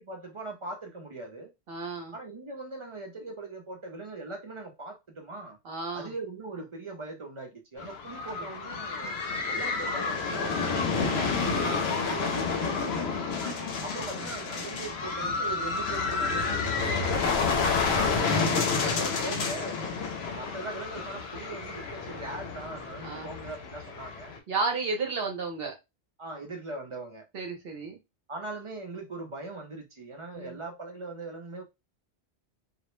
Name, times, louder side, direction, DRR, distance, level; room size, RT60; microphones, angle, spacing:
voice 1, 0.0-1.5 2.1-5.6 5.9-9.2 9.5-13.1 13.8-17.8 18.7-19.8 20.2-24.3 26.2-27.2 28.3-31.6, right 2 dB, 40° right, 0.5 m, -40 dB
voice 2, 1.7-2.2 5.6-6.1 10.6-10.7 11.5-11.6 13.4-13.6 14.2-14.3 17.9-18.7 23.0-23.3 24.5-25.7 27.3-28.0 30.3-30.6, right 4 dB, 60° right, 0.9 m, -33 dB
sound 1, 7.8-24.4, left 4 dB, 75° left, 0.8 m, -30 dB
2.4 x 2.1 x 3.0 m
omnidirectional pair, 1.1 m